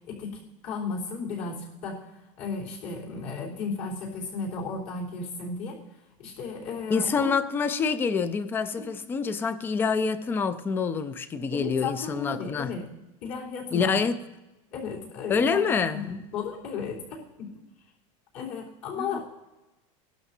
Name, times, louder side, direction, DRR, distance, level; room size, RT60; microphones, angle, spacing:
voice 1, 0.1-2.0 2.4-5.8 6.2-7.3 8.8-8.9 11.5-12.8 13.2-14.0 14.7-17.5 18.3-19.2, left 4 dB, 55° left, 3.5 m, -34 dB
voice 2, 6.9-12.7 13.7-14.2 15.3-16.2 19.0-19.2, left 5 dB, 15° left, 0.3 m, -26 dB
18.5 x 12.0 x 2.7 m
supercardioid pair, 175°, 17 cm